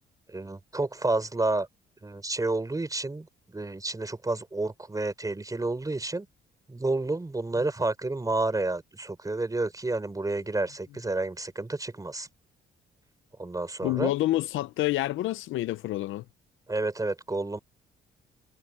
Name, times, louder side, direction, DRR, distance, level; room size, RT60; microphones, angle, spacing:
voice 1, 0.3-1.7 2.0-3.3 3.5-6.3 6.7-12.3 13.4-14.1 16.7-17.6, right 2 dB, 15° right, 5.0 m, -30 dB
voice 2, 13.8-16.2, left 16 dB, 80° left, 0.7 m, -28 dB
cardioid pair, 90°, 20 cm